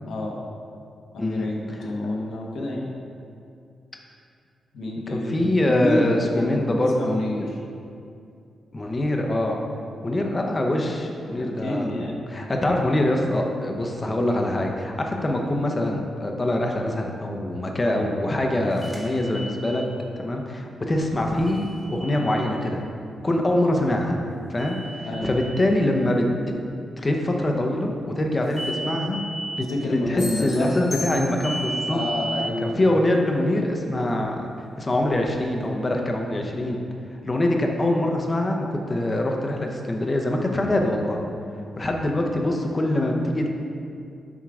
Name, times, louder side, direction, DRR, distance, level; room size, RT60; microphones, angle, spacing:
voice 1, 0.0-0.4 1.1-2.9 4.7-7.6 11.3-12.2 25.0-25.4 29.6-30.8 31.9-32.8, left 1 dB, 80° left, -1 dB, 1.0 m, -28 dB
voice 2, 1.2-1.9 5.1-7.2 8.7-9.6 10.0-11.9 12.3-19.8 20.2-22.8 23.2-24.2 24.5-24.8 25.2-26.6 27.0-29.2 29.6-32.0 32.6-34.5 34.8-36.8 37.3-41.2 41.8-43.5, left 1 dB, 25° left, 2 dB, 0.7 m, -24 dB
sound 1, 18.8-19.9 21.5-22.6 24.6-25.7 28.5-29.7 31.4-32.5, right 2 dB, 5° right, 1.2 m, -34 dB
sound 2, 30.2-31.8, left 3 dB, 55° left, 1.4 m, -35 dB
7.3 x 3.7 x 4.8 m, 2.4 s
wide cardioid pair, 130°, 0 cm